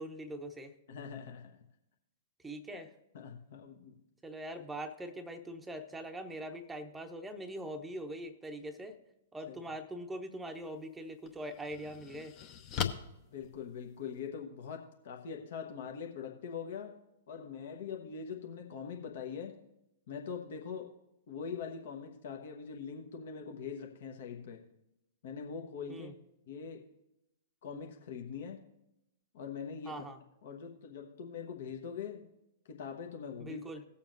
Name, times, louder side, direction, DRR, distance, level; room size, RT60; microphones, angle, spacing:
voice 1, 0.0-0.7 2.4-2.9 4.2-9.0 9.3-12.3 25.9-26.1 29.8-30.2 33.4-33.8, right 1 dB, 10° right, 5 dB, 0.8 m, -42 dB
voice 2, 0.9-1.6 2.7-2.8 3.1-4.0 9.5-9.6 13.3-17.0 17.3-19.6 20.1-20.9 21.3-24.7 25.2-26.1 26.5-26.9 27.6-28.6 29.3-30.0 30.4-32.3 32.7-33.6, left 6 dB, 55° left, 2 dB, 1.0 m, -43 dB
sound 1, 10.5-10.7 11.2-14.3, left 9 dB, 35° left, 0.8 m, -40 dB
18.5 x 7.1 x 2.6 m, 0.88 s
figure-of-eight pair, 110°, 0 cm